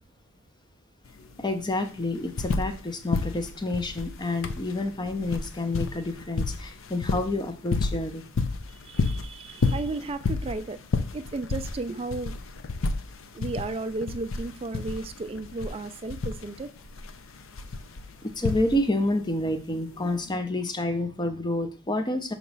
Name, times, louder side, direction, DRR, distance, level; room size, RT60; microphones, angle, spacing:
sound 1, 1.1-1.2 1.4-2.8 3.1-19.1 20.1-20.2, left 3 dB, 65° left, 0.5 m, -31 dB
voice 1, 1.2-8.2 18.2-22.3, left 1 dB, 20° left, 8 dB, 0.6 m, -29 dB
voice 2, 8.7-10.8 11.1-12.4 13.3-16.7, right 3 dB, 25° right, 10 dB, 0.4 m, -34 dB
5.8 x 3.0 x 5.3 m, 0.38 s
head